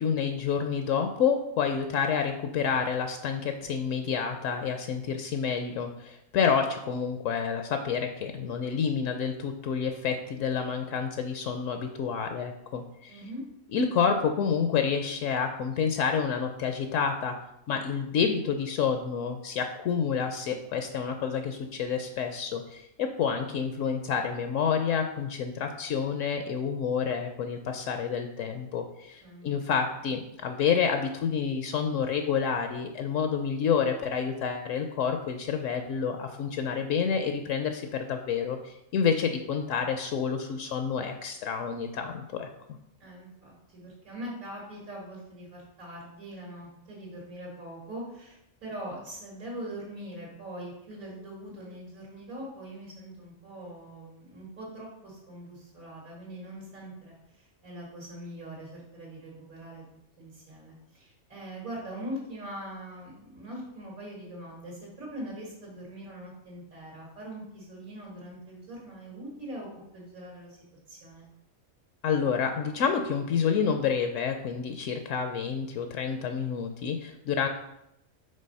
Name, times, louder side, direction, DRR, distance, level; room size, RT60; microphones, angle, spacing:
voice 1, 0.0-13.2 13.7-17.3 17.7-42.5 72.0-77.5, left 6 dB, 70° left, 6 dB, 0.9 m, -29 dB
voice 2, 13.1-13.4 29.2-29.8 43.0-59.8 60.2-70.6 70.9-71.3, right 1 dB, 85° right, -5 dB, 2.3 m, -42 dB
5.4 x 3.7 x 5.3 m, 0.82 s
omnidirectional pair, 1.4 m